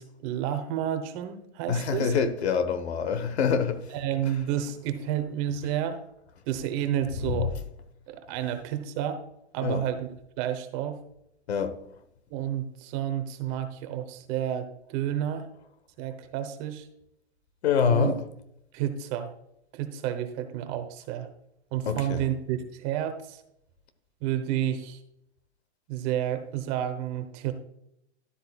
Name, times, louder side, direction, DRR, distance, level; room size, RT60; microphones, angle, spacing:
voice 1, 0.0-2.1 3.9-6.0 6.5-7.5 8.1-9.2 9.5-10.1 10.4-11.0 12.3-15.5 16.0-16.9 17.9-18.1 18.7-19.3 19.7-21.3 21.7-23.4 24.2-25.0 25.9-27.5, right 10 dB, 30° right, 1.0 m, -30 dB
voice 2, 1.7-3.9 4.2-4.3 7.2-7.6 9.6-9.8 11.5-11.8 17.6-18.2 21.8-22.3, left 6 dB, 70° left, 1.3 m, -26 dB
12.0 x 7.8 x 2.4 m
hypercardioid pair, 140°, 34 cm